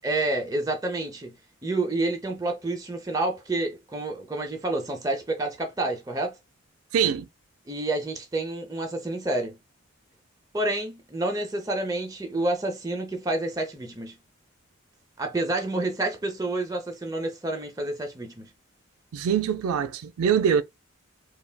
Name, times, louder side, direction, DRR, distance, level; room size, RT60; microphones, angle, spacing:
voice 1, 0.0-1.4 1.6-6.4 7.7-9.6 10.5-14.2 15.2-18.5, right 2 dB, 15° right, 0.5 m, -29 dB
voice 2, 6.9-7.3 19.1-20.6, right 7 dB, 80° right, 0.3 m, -23 dB
3.3 x 2.3 x 2.2 m
head